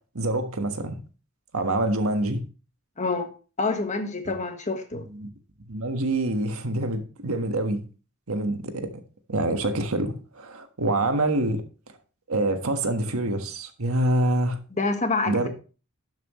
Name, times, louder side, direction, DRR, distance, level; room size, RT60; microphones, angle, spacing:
voice 1, 0.1-1.0 1.5-2.4 5.1-5.3 5.7-7.8 8.3-8.9 9.3-11.6 12.3-14.6 15.3-15.5, right 1 dB, 85° right, 1.5 m, -26 dB
voice 2, 3.0-3.3 3.6-5.0 14.8-15.5, left 3 dB, 35° left, 1.5 m, -27 dB
12.0 x 7.5 x 3.1 m
head